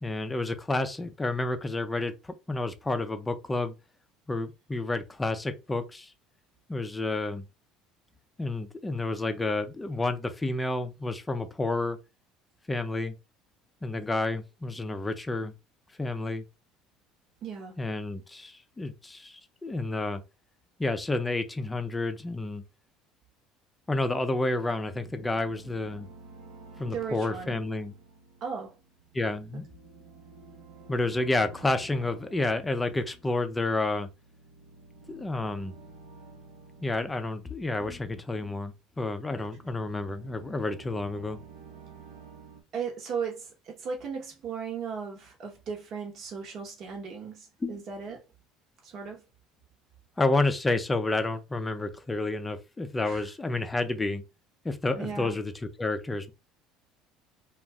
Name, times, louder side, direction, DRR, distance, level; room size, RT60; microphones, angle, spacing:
voice 1, 0.0-3.7 4.3-6.1 6.7-7.4 8.4-12.0 12.7-13.1 13.8-15.5 16.0-16.4 17.8-20.2 20.8-22.6 23.9-26.1 26.8-27.9 29.1-29.6 30.9-34.1 35.1-35.7 36.8-41.4 47.6-47.8 50.2-54.2 54.6-56.3, left 2 dB, 15° left, 0.4 m, -30 dB
voice 2, 17.4-17.8 26.9-27.6 28.4-28.7 42.7-48.2 48.8-49.2 53.0-53.3 55.0-55.4, right 6 dB, 50° right, 1.0 m, -36 dB
sound 1, 24.2-38.5 39.1-42.6, right 4 dB, 85° right, 0.9 m, -52 dB
2.5 x 2.4 x 3.3 m
supercardioid pair, 105°, 0 cm